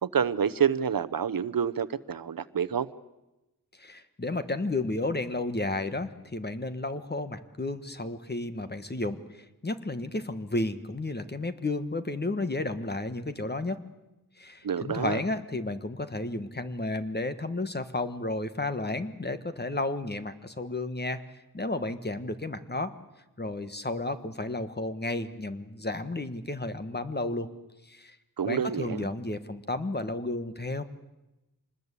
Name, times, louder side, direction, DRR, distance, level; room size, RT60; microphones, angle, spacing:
voice 1, 0.0-2.9 14.6-15.2 28.4-29.1, right 7 dB, 65° right, 14 dB, 0.9 m, -28 dB
voice 2, 3.8-13.8 14.4-21.2 21.5-22.9 23.4-27.5 27.8-28.2 28.4-30.8, left 2 dB, 25° left, 10 dB, 1.4 m, -32 dB
25.5 x 20.0 x 8.3 m, 0.99 s
wide cardioid pair, 100°, 36 cm